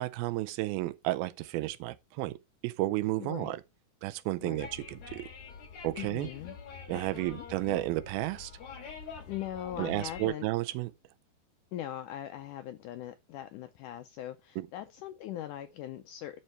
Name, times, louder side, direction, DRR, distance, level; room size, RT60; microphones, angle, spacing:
voice 1, 0.0-2.4 2.6-3.6 4.0-5.3 5.8-6.3 6.9-8.5 9.8-10.9 14.6-14.7, right 17 dB, 85° right, 2.5 m, -32 dB
voice 2, 3.2-3.6 4.4-4.7 6.0-6.6 6.9-7.5 9.3-10.5 11.7-16.4, left 12 dB, 90° left, 1.8 m, -41 dB
sound 1, 4.6-10.3, left 5 dB, 55° left, 3.1 m, -46 dB
12.0 x 4.5 x 4.5 m
omnidirectional pair, 4.3 m